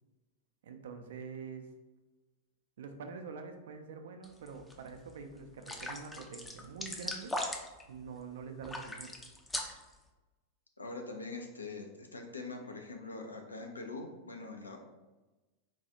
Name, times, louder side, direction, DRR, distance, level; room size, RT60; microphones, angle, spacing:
voice 1, 0.6-1.7 2.8-7.3 7.9-9.2, right 5 dB, 60° right, 6 dB, 0.4 m, -45 dB
sound 1, 4.2-4.7 5.1-5.2 5.6-7.8 8.6-9.9, left 1 dB, 10° left, 0.4 m, -39 dB
voice 2, 10.8-14.8, left 3 dB, 80° left, 3 dB, 0.5 m, -43 dB
3.9 x 2.3 x 2.7 m, 1.1 s
figure-of-eight pair, 90°, 0 cm